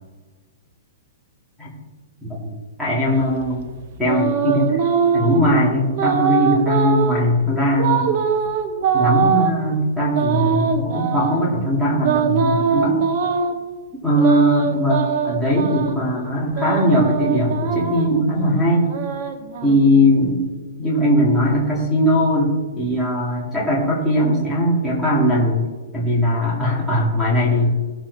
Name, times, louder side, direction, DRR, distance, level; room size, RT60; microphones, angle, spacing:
voice 1, 2.2-3.7 4.0-4.8 5.1-8.1 8.9-13.0 14.0-18.9 19.6-20.4 20.8-25.7 25.9-27.8, equal, ahead, -9 dB, 2.5 m, -19 dB
sound 1, 3.2-5.5 5.9-7.2 7.8-9.5 10.1-11.4 12.0-13.6 14.1-16.0 16.5-18.2 18.8-20.1, right 7 dB, 40° right, 1.1 m, -22 dB
18.0 x 7.4 x 4.1 m, 1.3 s
hypercardioid pair, 170°, 0 cm